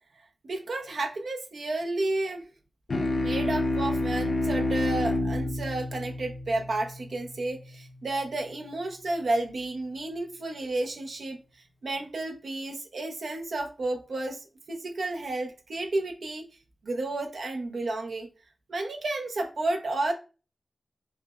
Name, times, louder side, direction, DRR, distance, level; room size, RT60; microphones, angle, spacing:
voice 1, 0.4-2.4 3.1-11.4 11.8-16.4 16.8-18.3 18.7-20.1, right 2 dB, 80° right, 3 dB, 0.6 m, -31 dB
sound 1, 2.9-7.8, left 2 dB, 60° left, 0.5 m, -29 dB
5.7 x 2.1 x 2.3 m, 0.32 s
wide cardioid pair, 80°, 0 cm